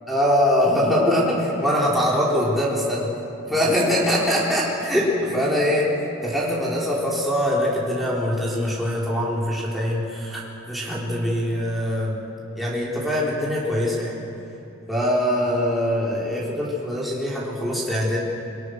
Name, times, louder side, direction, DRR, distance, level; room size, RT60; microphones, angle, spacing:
voice 1, 0.1-3.1 3.5-5.9 6.2-12.2 12.6-14.1 14.9-18.2, equal, ahead, -6 dB, 4.1 m, -23 dB
26.5 x 24.0 x 6.6 m, 2.8 s
head